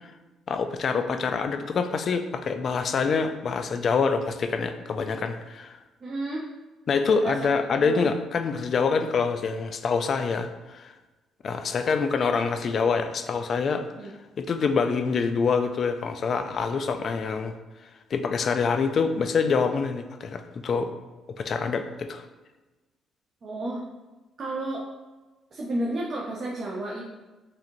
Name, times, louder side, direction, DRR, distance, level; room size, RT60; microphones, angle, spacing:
voice 1, 0.5-5.8 6.9-10.9 11.4-13.8 14.4-17.5 18.1-20.9 21.4-22.2, left 5 dB, 50° left, 7 dB, 0.3 m, -26 dB
voice 2, 6.0-6.5 7.2-8.1 14.0-14.1 23.4-23.8 24.4-24.9 25.5-27.2, right 1 dB, 45° right, -3 dB, 0.5 m, -32 dB
4.7 x 2.9 x 2.6 m, 1.2 s
cardioid pair, 100°, 0 cm